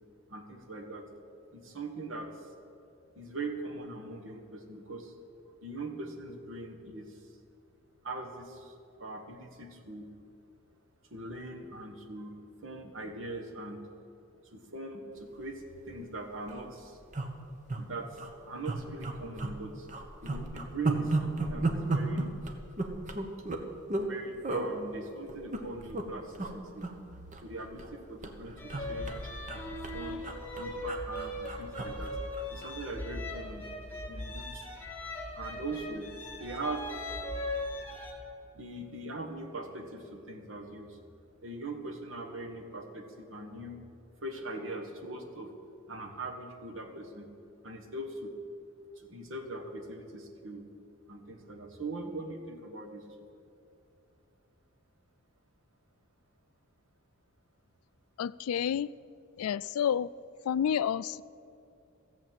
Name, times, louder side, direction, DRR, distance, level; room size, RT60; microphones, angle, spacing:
voice 1, 0.3-1.0 1.5-2.5 3.1-5.1 5.6-7.3 8.0-10.1 11.1-13.8 14.4-17.0 17.7-19.9 20.2-22.3 24.1-26.9 27.4-30.2 30.6-32.2 32.4-33.6 34.1-34.7 35.3-36.1 36.4-36.8 38.5-41.0 41.4-43.8 44.2-45.5 45.9-47.3 47.6-48.3 48.9-50.7 51.1-53.3, right 2 dB, 65° right, 4 dB, 1.4 m, -41 dB
sound 1, 15.7-15.8 16.1-16.2 16.4-16.6 17.1-17.8 18.1-18.3 18.6-19.6 19.9-24.1 24.4-24.7 25.3-26.0 26.3-26.5 26.8-27.9 28.2-32.8 33.1-33.3, right 2 dB, 35° right, 1.0 m, -34 dB
sound 2, 28.6-38.1, left 1 dB, 10° left, 1.8 m, -39 dB
voice 2, 58.2-58.9 59.4-60.1 60.4-61.2, left 8 dB, 90° left, 19 dB, 0.3 m, -29 dB
14.0 x 7.7 x 7.6 m, 2.5 s
head